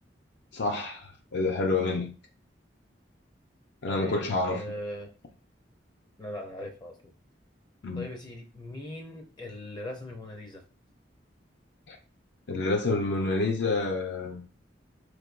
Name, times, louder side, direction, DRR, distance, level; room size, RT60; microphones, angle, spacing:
voice 1, 0.5-2.1 3.8-4.6 7.8-8.1 11.9-12.0 12.5-14.4, left 3 dB, 70° left, 0.6 m, -28 dB
voice 2, 3.9-5.1 6.2-7.1 7.9-10.6, left 1 dB, 25° left, 0.5 m, -40 dB
4.3 x 3.3 x 2.5 m
head